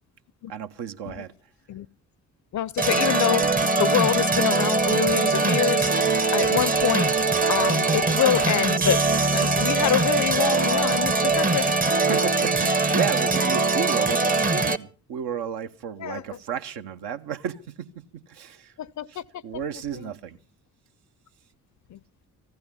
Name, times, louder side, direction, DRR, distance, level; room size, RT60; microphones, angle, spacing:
voice 1, 0.5-1.3 11.5-18.7 19.1-20.4, right 8 dB, 55° right, 1.0 m, -33 dB
voice 2, 2.5-5.9 6.3-7.1 7.5-9.0 9.3-11.6 16.0-16.2 18.8-19.4 19.9-20.1 21.9-22.0, left 10 dB, 40° left, 0.6 m, -26 dB
sound 1, 2.8-14.8, right 3 dB, 20° right, 0.9 m, -22 dB
15.0 x 12.5 x 5.6 m
figure-of-eight pair, 45°, 46 cm